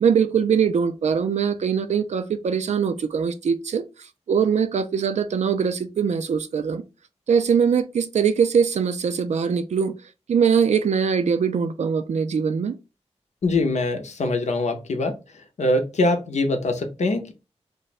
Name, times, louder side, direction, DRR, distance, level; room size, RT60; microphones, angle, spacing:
voice 1, 0.0-3.8 4.3-6.8 7.3-9.9 10.3-12.8, right 6 dB, 80° right, 0.4 m, -22 dB
voice 2, 13.4-15.2 15.6-17.3, left 2 dB, 80° left, 0.7 m, -23 dB
2.6 x 2.2 x 4.0 m
cardioid pair, 55°, 12 cm